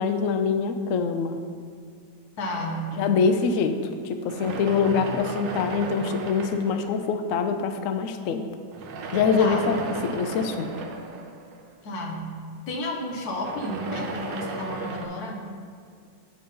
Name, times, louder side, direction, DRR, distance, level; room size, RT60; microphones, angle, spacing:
voice 1, 0.0-1.4 3.0-3.8 4.0-8.4 9.1-10.7, left 5 dB, 90° left, 8 dB, 0.7 m, -24 dB
voice 2, 2.4-3.0 9.4-9.7 11.8-15.4, left 1 dB, 60° left, 1 dB, 1.4 m, -32 dB
sound 1, 2.5-3.7 4.2-7.4 8.7-12.2 13.2-15.1, right 3 dB, 80° right, 1.4 m, -35 dB
9.3 x 3.7 x 5.4 m, 2.2 s
omnidirectional pair, 1.9 m